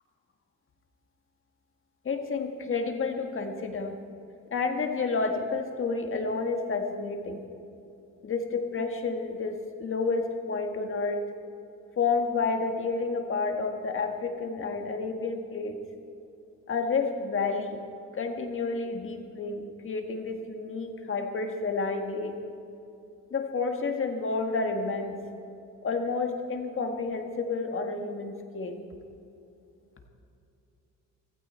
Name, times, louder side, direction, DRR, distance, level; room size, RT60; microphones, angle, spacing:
voice 1, 2.1-3.9 4.5-7.5 8.2-11.2 12.0-15.8 16.7-17.8 18.1-22.4 23.3-25.2 25.8-28.8, left 4 dB, 45° left, 4 dB, 1.7 m, -30 dB
15.5 x 15.5 x 4.4 m, 2.6 s
cardioid pair, 90°, 30 cm